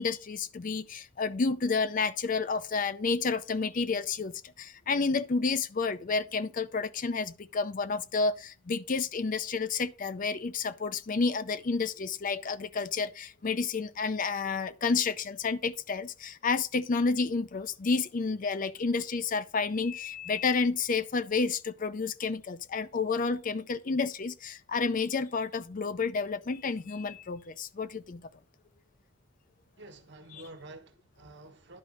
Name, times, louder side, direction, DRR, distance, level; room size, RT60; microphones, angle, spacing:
voice 1, 0.0-28.2 30.3-30.4, left 4 dB, 40° left, 0.5 m, -30 dB
voice 2, 29.8-31.8, right 2 dB, 55° right, 1.4 m, -49 dB
11.0 x 5.2 x 5.1 m
head